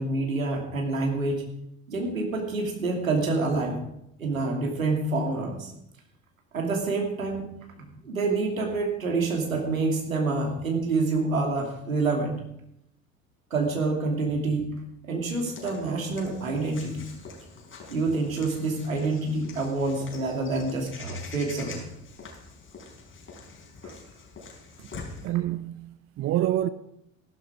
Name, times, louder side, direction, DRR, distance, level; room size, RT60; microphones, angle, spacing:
voice 1, 0.0-1.4 1.9-3.8 4.2-5.7 6.5-7.5 7.8-12.3 13.5-14.7 15.1-17.2 17.9-21.8 23.8-23.9, right 3 dB, 80° right, 2.8 m, -27 dB
Walk footsteps / Bird vocalization bird call bird song, 15.3-25.3, left 4 dB, 30° left, 5.1 m, -45 dB
voice 2, 25.2-26.7, right 13 dB, 35° right, 0.6 m, -27 dB
15.0 x 12.5 x 4.9 m
figure-of-eight pair, 60°, 40 cm